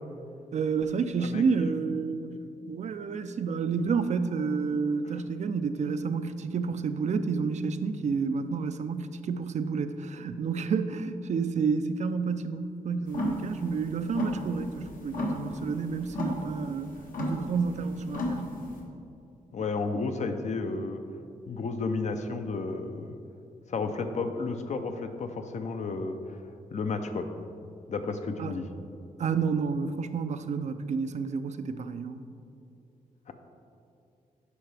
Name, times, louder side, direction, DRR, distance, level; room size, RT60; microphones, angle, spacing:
voice 1, 0.5-2.4 2.7-18.4 28.4-28.5 29.2-32.2, right 5 dB, 55° right, 10 dB, 0.4 m, -30 dB
sound 1, 13.1-18.8, left 1 dB, 75° left, 1.2 m, -33 dB
voice 2, 19.5-21.0 21.5-23.2 23.7-26.2 26.7-27.3 27.9-28.7 33.3-33.4, left 4 dB, 55° left, 7 dB, 0.6 m, -32 dB
9.5 x 5.5 x 3.3 m, 2.6 s
cardioid pair, 100°, 15 cm